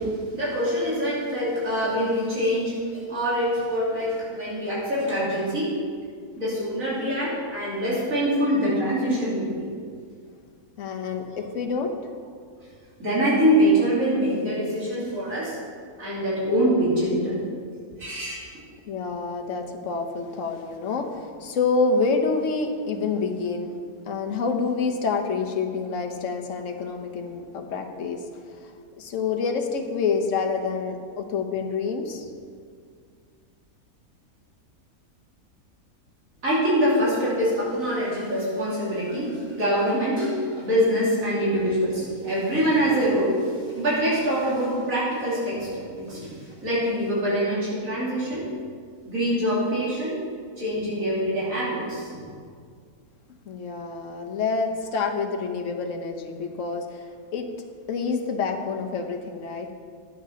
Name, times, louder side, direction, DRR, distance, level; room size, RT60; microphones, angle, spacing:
voice 1, 0.3-5.7 6.4-9.7 11.3-11.4 13.0-15.6 16.0-17.5 18.0-18.5 36.4-48.5 49.0-50.2 50.6-52.2, equal, 60° right, -8 dB, 3.4 m, -24 dB
voice 2, 10.8-11.9 18.9-23.7 24.1-32.3 53.4-57.5 57.9-59.7, left 4 dB, 60° left, 3 dB, 1.3 m, -27 dB
11.0 x 7.4 x 5.7 m, 2.1 s
omnidirectional pair, 1.6 m